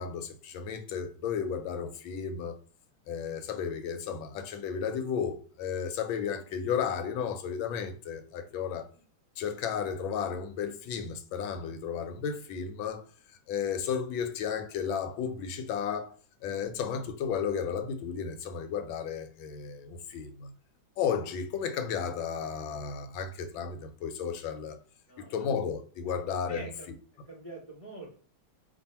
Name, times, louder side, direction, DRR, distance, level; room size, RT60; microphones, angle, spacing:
voice 1, 0.0-2.6 3.1-8.9 9.4-13.0 13.5-16.1 16.4-20.5 21.0-24.8 25.3-26.7, left 7 dB, 80° left, 1.3 m, -33 dB
voice 2, 8.6-9.0 25.1-25.5 26.1-26.2 26.4-26.9 27.3-28.2, right 2 dB, 65° right, 0.3 m, -45 dB
2.8 x 2.6 x 4.1 m
omnidirectional pair, 2.2 m